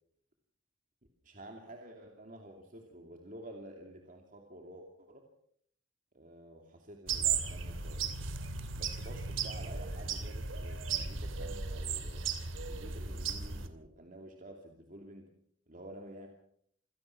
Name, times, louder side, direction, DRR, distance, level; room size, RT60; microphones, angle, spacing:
voice 1, 1.2-5.2 6.1-8.1 8.7-12.4 12.6-15.3 15.7-16.3, right 1 dB, 45° right, 2 dB, 2.8 m, -50 dB
sound 1, 7.1-13.7, right 5 dB, 90° right, 2.8 m, -36 dB
26.5 x 17.0 x 6.0 m, 0.68 s
head